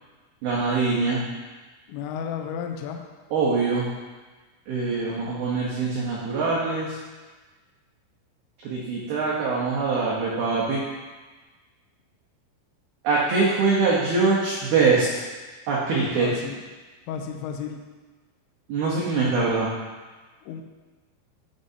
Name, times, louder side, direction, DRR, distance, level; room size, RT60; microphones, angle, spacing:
voice 1, 0.4-1.2 3.3-3.9 4.7-7.0 8.6-10.8 13.0-15.1 15.7-16.3 18.7-19.7, right 4 dB, 80° right, -6 dB, 2.2 m, -23 dB
voice 2, 1.9-3.0 5.0-5.4 16.2-16.5 17.1-17.8 20.4-20.6, left 7 dB, 90° left, 3 dB, 2.6 m, -33 dB
11.5 x 5.4 x 2.7 m, 1.3 s
omnidirectional pair, 5.9 m